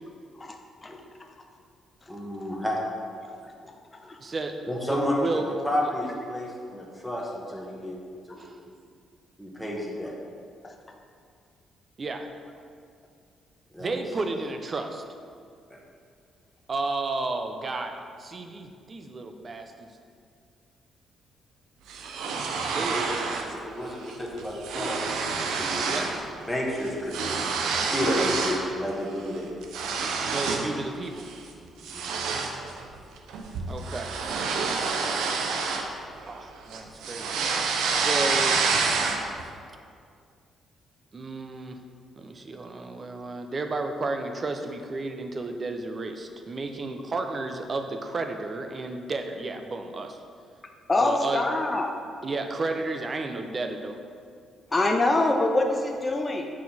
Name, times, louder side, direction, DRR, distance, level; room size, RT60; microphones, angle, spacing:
voice 1, 2.1-2.8 4.7-8.0 8.3-8.7 9.4-10.1 13.7-14.0 15.7-15.8 22.8-23.2 23.5-25.1 25.3-25.9 26.5-27.1 27.7-29.5 29.9-30.0 31.8-32.0, left 1 dB, ahead, -3 dB, 1.2 m, -31 dB
voice 2, 4.2-5.5 5.8-5.9 8.4-8.6 12.0-12.3 13.8-15.0 16.7-19.9 22.7-23.0 25.9-26.1 28.1-28.3 30.3-31.3 33.7-34.1 36.2-37.3 37.9-38.9 41.1-41.8 42.2-50.2 51.0-51.4 52.2-54.0, right 3 dB, 35° right, 5 dB, 0.5 m, -32 dB
sound 1, 21.9-23.5 23.9-24.1 24.4-26.2 26.5-28.7 29.1-30.7 31.2-31.4 31.8-36.4 36.7-39.4, right 4 dB, 85° right, 0.6 m, -28 dB
voice 3, 50.9-52.0 54.7-56.5, left 2 dB, 25° left, 3 dB, 0.5 m, -24 dB
6.3 x 4.3 x 4.2 m, 2.2 s
cardioid pair, 90°, 0 cm